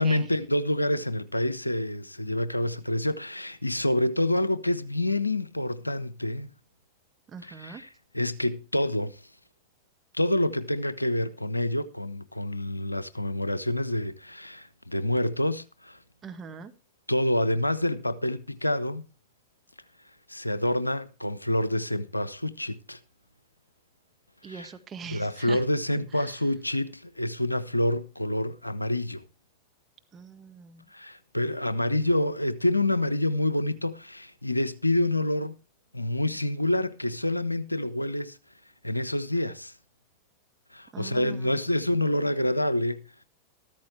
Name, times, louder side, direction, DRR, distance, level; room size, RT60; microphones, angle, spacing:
voice 1, 0.0-6.5 7.4-9.2 10.1-16.0 17.1-19.0 20.3-23.0 24.4-24.7 25.1-29.2 30.9-35.5 35.9-38.4 38.8-39.7 40.7-43.1, left 1 dB, 85° left, 0.7 m, -27 dB
voice 2, 7.3-7.8 16.2-16.7 24.4-25.6 25.9-26.3 30.1-30.8 40.9-41.6, right 6 dB, 25° right, 1.5 m, -42 dB
14.0 x 14.0 x 3.3 m
figure-of-eight pair, 90°, 0 cm